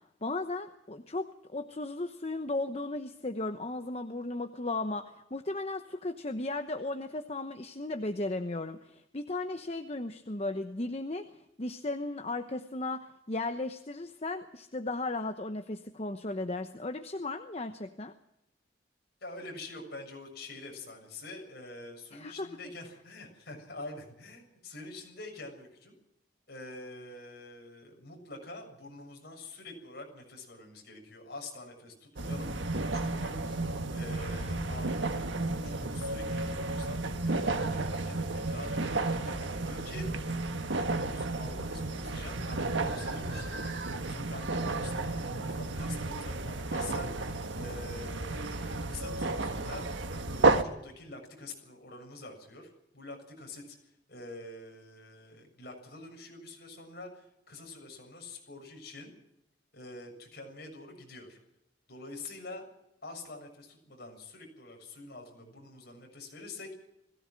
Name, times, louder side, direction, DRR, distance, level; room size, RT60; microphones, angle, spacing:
voice 1, 0.2-1.3 1.5-11.3 11.6-18.1 22.1-22.5, left 2 dB, 35° left, 7 dB, 1.0 m, -35 dB
voice 2, 19.2-26.0 26.5-32.5 32.9-35.3 35.6-53.8 54.1-59.1 59.7-61.4 61.9-62.7 63.0-66.7, left 2 dB, 55° left, 2 dB, 7.2 m, -46 dB
sound 1, 32.2-50.6, right 2 dB, 85° right, 1.6 m, -32 dB
21.0 x 16.5 x 7.7 m, 0.84 s
head